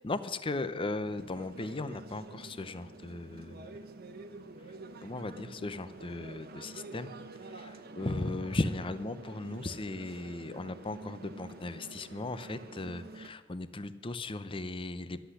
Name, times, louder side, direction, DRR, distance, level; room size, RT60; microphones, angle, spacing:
voice 1, 0.0-3.7 5.0-7.1 7.5-15.2, left 2 dB, 25° left, 13 dB, 0.6 m, -37 dB
sound 1, 1.1-13.3, right 3 dB, 50° right, 1.1 m, -48 dB
12.5 x 7.9 x 9.9 m, 1.4 s
head